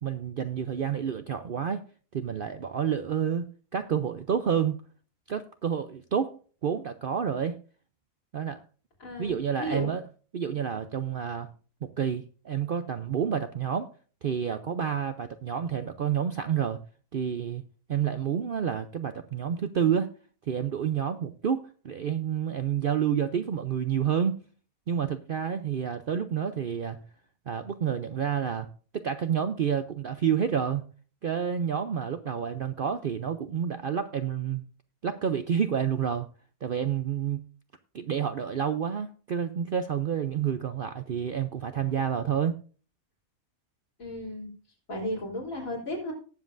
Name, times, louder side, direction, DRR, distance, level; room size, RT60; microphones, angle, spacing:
voice 1, 0.0-1.8 2.1-4.8 5.3-7.6 8.3-8.6 9.2-10.1 10.3-11.5 11.8-13.9 14.2-16.8 17.1-17.6 17.9-20.1 20.5-24.4 24.9-27.0 27.5-30.9 31.2-34.6 35.0-36.3 36.6-37.5 37.9-42.6, right 8 dB, 60° right, 9 dB, 0.6 m, -29 dB
voice 2, 9.0-9.9 44.0-44.5 44.9-46.1, left 1 dB, 70° left, -1 dB, 3.7 m, -34 dB
18.5 x 7.5 x 2.5 m, 0.38 s
omnidirectional pair, 1.5 m